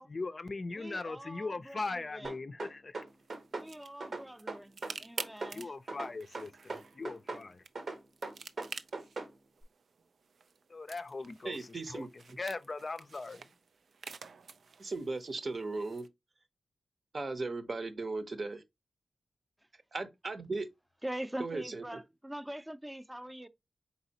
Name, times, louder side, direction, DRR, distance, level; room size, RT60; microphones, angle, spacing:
voice 1, 0.0-3.0 5.5-7.6 10.7-13.4, left 3 dB, 50° left, 0.4 m, -40 dB
voice 2, 0.7-2.4 3.5-5.7 21.0-23.5, right 1 dB, 10° right, 0.5 m, -43 dB
sound 1, 2.2-3.7 4.0-5.6 5.9-7.5 7.8-9.3, right 3 dB, 70° right, 1.1 m, -40 dB
sound 2, 3.1-16.1, right 5 dB, 90° right, 0.4 m, -50 dB
voice 3, 11.4-12.1 14.8-16.1 17.1-18.6 19.9-20.7 21.4-21.8, right 3 dB, 55° right, 0.8 m, -37 dB
4.2 x 4.0 x 2.8 m
wide cardioid pair, 70°, 0 cm